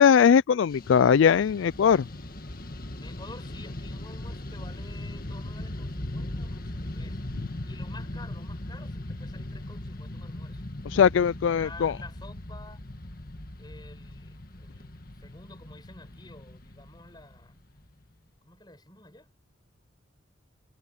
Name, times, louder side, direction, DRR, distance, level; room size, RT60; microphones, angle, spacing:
voice 1, 0.0-2.0 10.9-11.9, left 7 dB, 70° left, 0.3 m, -20 dB
Fixed-wing aircraft airplane, 0.7-18.1, left 1 dB, 45° left, 1.9 m, -39 dB
voice 2, 3.0-7.2 7.6-10.6 11.5-12.8 13.6-17.6 18.4-19.3, left 2 dB, 20° left, 5.5 m, -49 dB
head